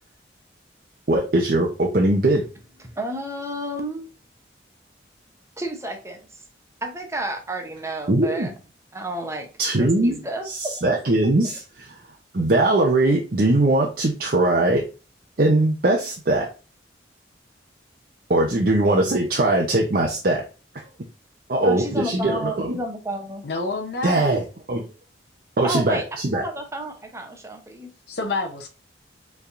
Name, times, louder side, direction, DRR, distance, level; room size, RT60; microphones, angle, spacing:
voice 1, 1.1-2.4 8.1-8.5 9.6-10.2 10.4-12.0 12.3-14.8 15.4-16.5 18.3-20.4 20.7-20.8 21.5-22.8 24.0-24.9 25.6-26.4, right 2 dB, 50° right, 0.7 m, -20 dB
voice 2, 2.8-4.1 5.6-6.2 6.8-8.5 8.9-9.5 9.8-10.9 21.6-23.4 25.6-27.9, right 1 dB, 15° right, 0.7 m, -31 dB
voice 3, 23.4-24.3 28.1-28.7, left 3 dB, 60° left, 0.7 m, -28 dB
4.7 x 3.4 x 2.5 m
head